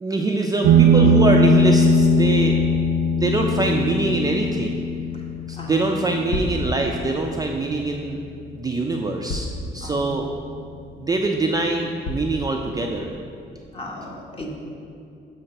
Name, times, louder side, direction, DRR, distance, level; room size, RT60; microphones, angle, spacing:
voice 1, 0.0-2.6 3.2-4.9 5.5-8.2 8.6-9.5 9.7-10.3 11.0-13.1, right 2 dB, 20° right, 1 dB, 0.4 m, -23 dB
sound 1, 0.6-9.7, equal, 70° right, 0.6 m, -20 dB
voice 2, 5.6-6.1 9.8-10.2 13.7-14.5, left 1 dB, 30° left, -1 dB, 1.1 m, -35 dB
sound 2, 6.3-6.6 8.2-8.3 9.3-9.6 10.2-10.3 10.9-11.0 12.0-12.4, left 2 dB, 70° left, 0.7 m, -29 dB
6.6 x 3.2 x 5.8 m, 2.5 s
cardioid pair, 90°, 20 cm